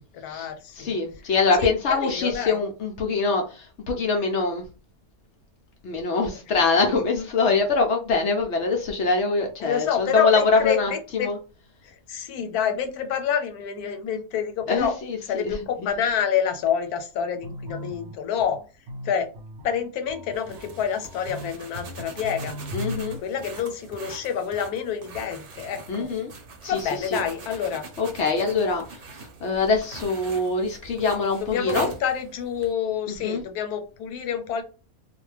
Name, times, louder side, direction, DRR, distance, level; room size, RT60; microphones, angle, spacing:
voice 1, 0.1-1.0 1.6-2.6 9.6-11.3 11.8-14.9 15.3-18.6 19.0-19.3 19.6-22.5 23.2-26.1 26.7-27.9 31.4-34.6, left 8 dB, 90° left, 6 dB, 1.1 m, -28 dB
voice 2, 0.8-4.6 5.8-11.4 14.7-15.6 22.7-23.2 25.9-26.3 26.6-27.2 28.0-31.9 33.2-33.4, left 4 dB, 65° left, 3 dB, 0.7 m, -24 dB
sound 1, 17.4-23.2, left 1 dB, 75° right, 1.0 m, -38 dB
sound 2, 20.3-32.7, right 3 dB, 55° right, 0.9 m, -43 dB
2.4 x 2.1 x 3.2 m, 0.34 s
omnidirectional pair, 1.6 m